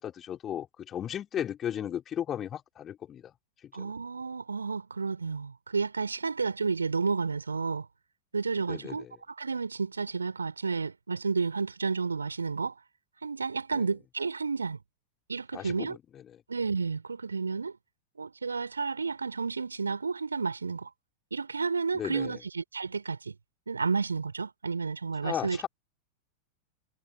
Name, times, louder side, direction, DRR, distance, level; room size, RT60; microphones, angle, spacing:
voice 1, 0.0-3.3 3.8-3.9 8.7-9.1 13.7-13.8 15.5-16.0 21.9-22.4 25.2-25.7, left 10 dB, 25° left, 4.1 m, -35 dB
voice 2, 3.7-7.9 8.3-12.7 13.2-14.8 15.3-16.0 16.5-17.8 18.2-20.9 21.3-23.3 23.7-25.6, right 4 dB, 75° right, 4.5 m, -31 dB
figure-of-eight pair, 90°, 0 cm